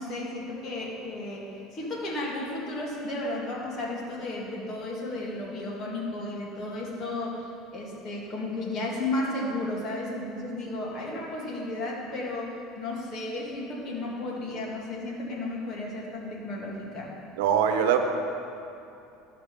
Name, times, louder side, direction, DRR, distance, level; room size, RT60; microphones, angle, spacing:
voice 1, 0.0-1.5 1.7-7.4 7.7-17.1, left 2 dB, 40° left, -3 dB, 2.3 m, -33 dB
voice 2, 17.4-18.0, right 9 dB, 90° right, 6 dB, 0.9 m, -22 dB
13.0 x 5.8 x 5.2 m, 2.7 s
supercardioid pair, 130°, 0 cm